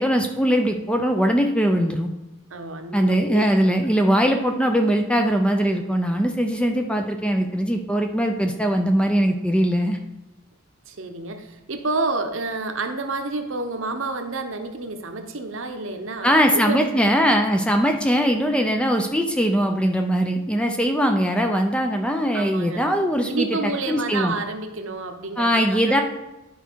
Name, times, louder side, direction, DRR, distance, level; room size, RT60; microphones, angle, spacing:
voice 1, 0.0-2.1 2.9-10.0 16.2-23.5 23.9-24.3 25.4-26.0, equal, 5° left, 4 dB, 0.4 m, -21 dB
voice 2, 2.5-3.8 10.9-16.9 22.3-22.8 23.3-26.0, right 3 dB, 60° right, 6 dB, 0.8 m, -29 dB
10.5 x 4.6 x 4.6 m, 1.0 s
head